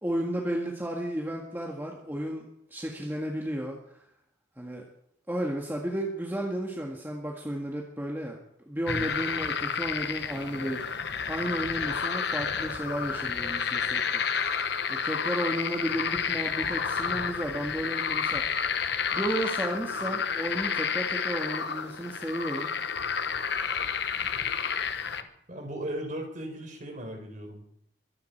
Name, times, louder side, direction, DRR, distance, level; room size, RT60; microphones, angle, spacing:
voice 1, 0.0-3.8 4.6-4.9 5.3-8.4 8.7-10.9 11.3-14.2 14.9-22.7, right 1 dB, 10° right, -1 dB, 1.8 m, -33 dB
sound 1, 8.9-25.2, left 6 dB, 60° left, 1.1 m, -30 dB
voice 2, 25.5-27.7, right 1 dB, 40° right, 4 dB, 4.2 m, -37 dB
23.5 x 11.0 x 4.6 m, 0.75 s
head